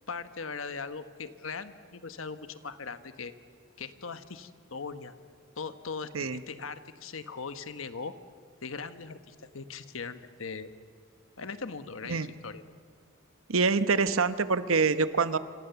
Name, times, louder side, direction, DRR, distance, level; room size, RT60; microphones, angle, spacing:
voice 1, 0.1-3.3 3.8-5.1 5.6-8.1 8.6-10.7 11.4-12.6, left 5 dB, 80° left, 11 dB, 1.2 m, -39 dB
voice 2, 13.5-15.4, right 4 dB, 90° right, 12 dB, 1.0 m, -25 dB
27.0 x 26.0 x 7.0 m, 2.1 s
head